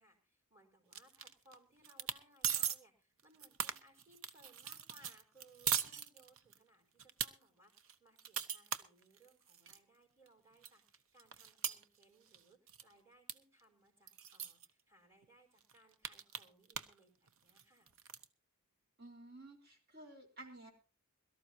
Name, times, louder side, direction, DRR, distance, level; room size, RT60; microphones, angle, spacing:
voice 1, 0.0-17.9, right 1 dB, 15° right, 3 dB, 4.3 m, -66 dB
sound 1, 0.9-1.5 1.8-2.2 2.4-2.8 3.2-6.6 7.0-7.3 7.8-9.8 10.3-10.4 10.6-12.4 12.7-12.9 13.3-13.4 13.6-13.7 14.1-14.7 15.2-15.3 15.6-17.0 17.3-18.2, right 8 dB, 60° right, 0.9 m, -40 dB
voice 2, 19.0-20.7, right 2 dB, 45° right, 2 dB, 4.1 m, -53 dB
22.5 x 13.0 x 2.8 m, 0.32 s
head